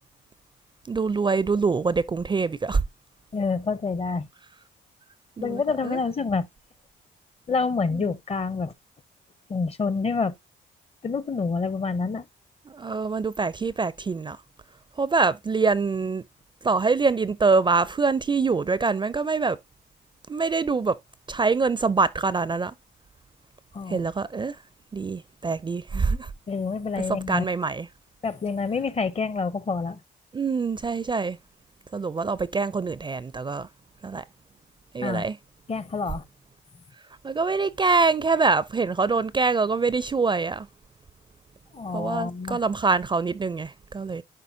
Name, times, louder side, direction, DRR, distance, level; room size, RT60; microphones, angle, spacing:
voice 1, 0.9-2.8 5.4-6.0 7.9-8.0 12.7-14.4 15.0-16.2 16.6-19.6 20.3-21.0 21.3-22.7 23.9-24.6 24.9-26.3 27.0-27.9 30.3-31.4 31.9-33.7 34.0-34.2 34.9-35.4 37.2-40.7 41.9-44.2, right 4 dB, 25° right, 0.4 m, -24 dB
voice 2, 3.3-4.3 5.4-6.5 7.5-8.7 9.5-10.3 11.0-12.2 23.7-24.1 26.5-27.4 28.2-30.0 35.0-35.3 35.7-36.2 41.7-42.6, left 4 dB, 30° left, 0.7 m, -27 dB
11.5 x 4.1 x 2.6 m
cardioid pair, 90°, 20 cm